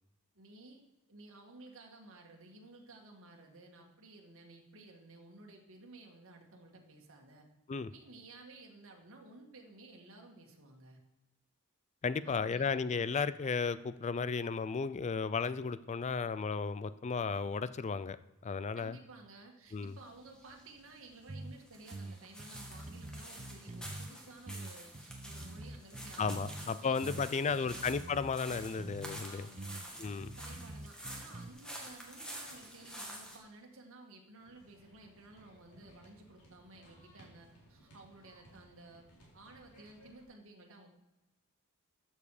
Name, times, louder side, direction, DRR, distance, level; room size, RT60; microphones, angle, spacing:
voice 1, 0.3-0.8 1.1-7.5 7.9-11.0 12.2-12.8 18.7-27.9 29.3-29.9 30.3-39.1 39.3-40.9, right 2 dB, 65° right, 1 dB, 2.0 m, -55 dB
voice 2, 12.0-18.2 18.4-19.0 19.7-20.0 26.2-29.5 30.0-30.3, left 5 dB, 30° left, 15 dB, 0.4 m, -34 dB
sound 1, 19.7-33.4, right 1 dB, 5° left, 1.9 m, -49 dB
sound 2, 21.3-21.6 21.9-24.1 24.5-26.7 27.0-29.2 29.6-31.5, right 2 dB, 30° right, 0.5 m, -46 dB
sound 3, 34.4-40.2, right 1 dB, 85° left, 3.8 m, -61 dB
14.0 x 7.2 x 4.9 m, 1.0 s
head